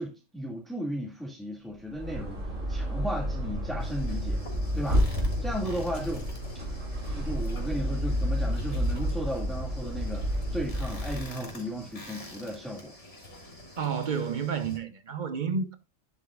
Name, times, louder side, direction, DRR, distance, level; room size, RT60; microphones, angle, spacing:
voice 1, 0.0-2.4 2.7-4.4 4.7-5.1 5.4-6.3 7.1-12.9, equal, ahead, 2.0 m, -35 dB
sound 1, 1.8-11.4, equal, 85° right, 4.1 m, -30 dB
sound 2, 3.8-14.8, left 1 dB, 65° left, 3.3 m, -47 dB
voice 2, 13.8-15.8, right 6 dB, 40° right, 1.0 m, -30 dB
10.0 x 7.5 x 2.4 m
omnidirectional pair, 1.3 m